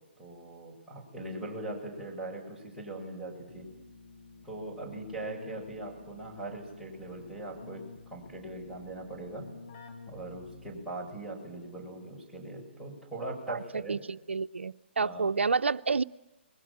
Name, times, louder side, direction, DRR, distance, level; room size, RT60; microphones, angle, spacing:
voice 1, 0.2-3.7 4.4-9.6 10.1-14.0 15.0-15.3, right 2 dB, ahead, -2 dB, 7.4 m, -40 dB
Keyboard (musical), 3.5-11.0, left 4 dB, 50° left, 5.8 m, -51 dB
voice 2, 13.5-16.0, right 4 dB, 85° right, 14 dB, 0.8 m, -30 dB
28.5 x 22.0 x 7.6 m, 0.98 s
hypercardioid pair, 145°, 6 cm